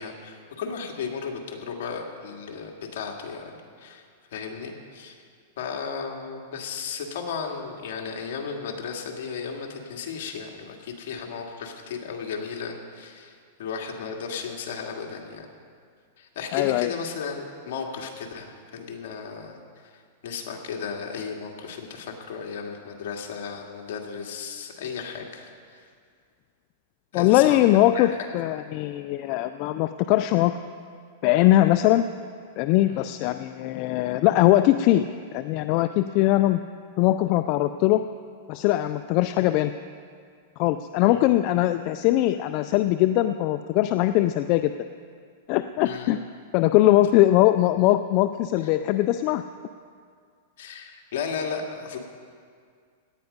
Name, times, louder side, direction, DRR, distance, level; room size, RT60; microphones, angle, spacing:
voice 1, 0.0-4.0 4.3-5.2 5.6-15.5 16.2-19.6 19.9-25.8 27.1-28.2 32.9-33.1 41.1-41.2 45.8-46.1 50.6-52.0, left 6 dB, 65° left, 1 dB, 2.1 m, -35 dB
voice 2, 16.5-16.9 27.1-30.6 31.2-32.0 32.6-35.0 35.3-36.6 37.0-38.0 38.5-39.7 40.6-44.7 45.5-46.2 46.5-49.4, left 15 dB, 45° left, 10 dB, 0.4 m, -21 dB
17.5 x 10.5 x 5.3 m, 2.1 s
supercardioid pair, 145°, 0 cm